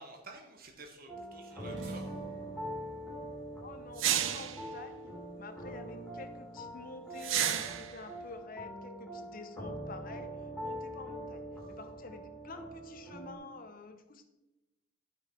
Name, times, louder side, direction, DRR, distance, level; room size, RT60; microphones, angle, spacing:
voice 1, 0.0-2.1, right 2 dB, 50° right, 3 dB, 1.1 m, -50 dB
sound 1, 1.1-13.3, equal, 5° left, 2.2 m, -43 dB
sound 2, 1.5-6.2, right 2 dB, 70° right, 1.7 m, -49 dB
sound 3, 1.8-1.9 4.0-4.6 7.2-8.0, right 10 dB, 85° right, 0.6 m, -31 dB
voice 2, 3.6-14.3, left 3 dB, 45° left, 7 dB, 0.9 m, -49 dB
11.0 x 5.5 x 4.5 m, 0.99 s
head